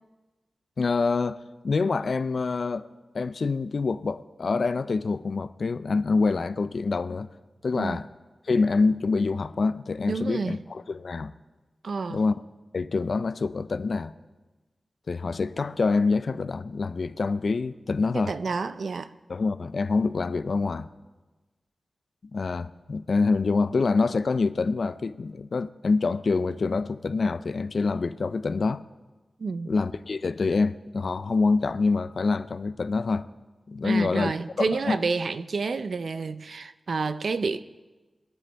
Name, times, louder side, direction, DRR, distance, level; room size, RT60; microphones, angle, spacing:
voice 1, 0.8-1.4 1.6-2.9 3.1-7.3 7.6-8.1 8.5-11.3 12.1-12.3 12.7-14.1 15.1-18.3 19.3-20.9 22.3-28.8 29.7-33.3 33.7-34.3 34.6-35.0, left 4 dB, 70° left, 0.5 m, -26 dB
voice 2, 10.1-10.6 11.8-12.2 18.1-19.1 29.4-29.7 33.8-37.6, right 4 dB, 80° right, 0.5 m, -29 dB
23.5 x 9.4 x 3.5 m
cardioid pair, 55°, 0 cm